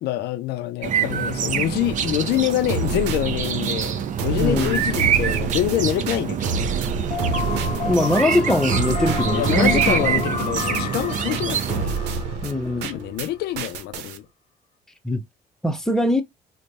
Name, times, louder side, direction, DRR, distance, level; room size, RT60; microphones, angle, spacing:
voice 1, 0.0-6.7 9.3-12.0 12.8-14.3, left 13 dB, 75° left, 0.5 m, -26 dB
sound 1, 0.8-11.8, right 8 dB, 50° right, 0.6 m, -26 dB
sound 2, 2.3-13.3 13.6-14.2, right 5 dB, 90° right, 0.8 m, -29 dB
voice 2, 4.4-4.9 7.8-10.2 12.4-12.9 15.0-15.2 15.6-16.2, left 1 dB, 5° left, 0.7 m, -22 dB
sound 3, 7.1-12.9, left 7 dB, 40° left, 0.8 m, -31 dB
3.2 x 2.1 x 4.0 m
cardioid pair, 110°, 17 cm